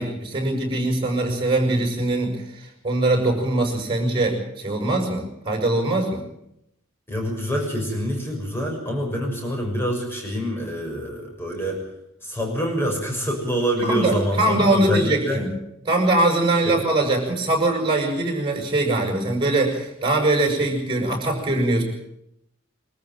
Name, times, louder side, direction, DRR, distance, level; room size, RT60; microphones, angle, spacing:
voice 1, 0.0-6.2 13.8-15.5 15.9-21.8, right 2 dB, 25° right, 2 dB, 7.1 m, -22 dB
voice 2, 7.1-11.8 12.2-15.4, equal, 10° left, 0 dB, 6.4 m, -26 dB
24.0 x 14.0 x 9.2 m, 0.80 s
head